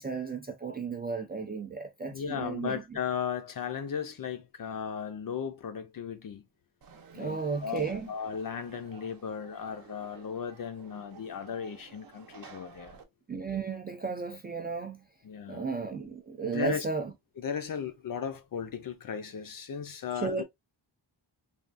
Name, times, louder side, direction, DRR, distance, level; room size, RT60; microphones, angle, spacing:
voice 1, 0.0-2.8 7.1-8.1 13.3-15.0 15.5-17.1 20.2-20.4, right 5 dB, 25° right, 0.3 m, -34 dB
voice 2, 2.1-6.5 7.1-13.0 15.2-15.7 16.4-16.9 17.4-20.4, left 7 dB, 50° left, 0.5 m, -36 dB
Conversation / Crowd, 6.8-13.0, right 6 dB, 50° right, 0.7 m, -52 dB
3.4 x 2.3 x 2.4 m
wide cardioid pair, 155°, 44 cm